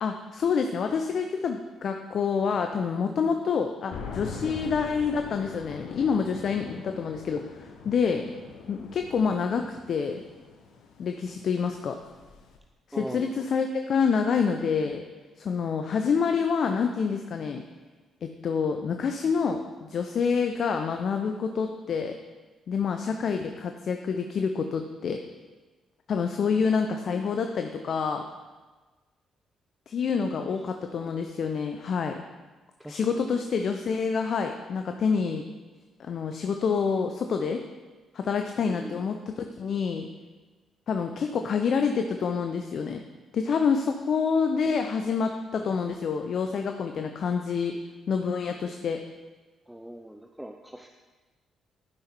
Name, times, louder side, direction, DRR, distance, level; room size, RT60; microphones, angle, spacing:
voice 1, 0.0-8.2 8.7-10.2 11.0-12.0 12.9-15.0 15.4-17.6 18.2-22.1 22.7-25.2 26.1-28.2 29.9-32.2 32.9-35.4 36.0-37.6 38.1-40.1 40.9-43.0 43.3-47.8 48.1-49.0, left 5 dB, 60° left, 5 dB, 0.6 m, -27 dB
sound 1, 3.9-12.6, left 5 dB, 75° left, 1.0 m, -43 dB
voice 2, 12.9-13.3 26.4-26.6 32.8-33.4 38.6-39.1 49.7-50.9, right 1 dB, 5° right, 4 dB, 0.7 m, -41 dB
12.0 x 5.6 x 4.6 m, 1.3 s
hypercardioid pair, 50°, 0 cm